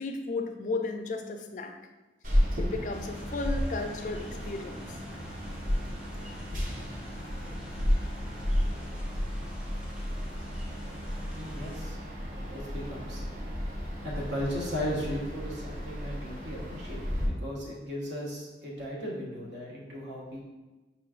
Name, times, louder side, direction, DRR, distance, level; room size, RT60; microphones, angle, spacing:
voice 1, 0.0-1.7 2.6-4.9, left 3 dB, 45° left, 5 dB, 0.3 m, -34 dB
sound 1, 2.2-17.3, equal, 45° right, 0.7 m, -33 dB
sound 2, 2.9-11.9, equal, 5° right, 0.5 m, -51 dB
voice 2, 11.3-12.0 12.4-13.2 14.0-20.5, equal, 75° right, -4 dB, 1.1 m, -36 dB
5.2 x 3.1 x 2.4 m, 1.2 s
head